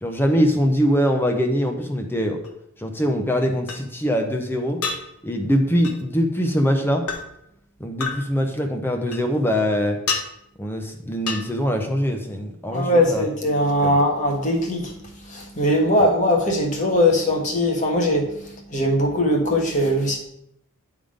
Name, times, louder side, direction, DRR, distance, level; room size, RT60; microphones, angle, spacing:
voice 1, 0.0-2.4 2.8-4.8 5.2-7.1 7.8-10.0 10.6-13.2 13.8-14.0 16.0-16.1, equal, 10° left, 4 dB, 0.7 m, -22 dB
sound 1, 2.4-2.5 3.7-3.8 4.8-5.0 5.8-6.0 7.1-7.2 8.0-8.2 9.1-9.6 10.1-10.2 11.3-11.4, left 5 dB, 85° left, 1.2 m, -27 dB
voice 2, 12.7-14.9 15.2-20.2, left 1 dB, 35° left, 1 dB, 1.4 m, -20 dB
10.0 x 3.7 x 5.0 m, 0.76 s
head